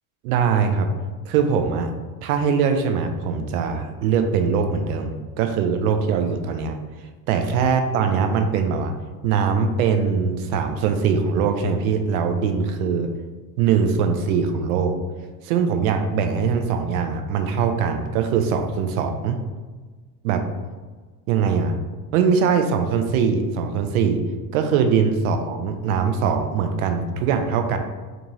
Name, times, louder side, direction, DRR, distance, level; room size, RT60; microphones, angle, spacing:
voice 1, 0.2-0.9 1.3-1.9 2.2-6.8 7.3-8.9 9.2-13.1 13.6-15.0 15.4-19.4 20.2-20.4 21.3-21.7 22.1-24.2 24.5-27.8, right 6 dB, 60° right, 6 dB, 0.6 m, -22 dB
4.4 x 2.5 x 3.0 m, 1.4 s
figure-of-eight pair, 65°, 49 cm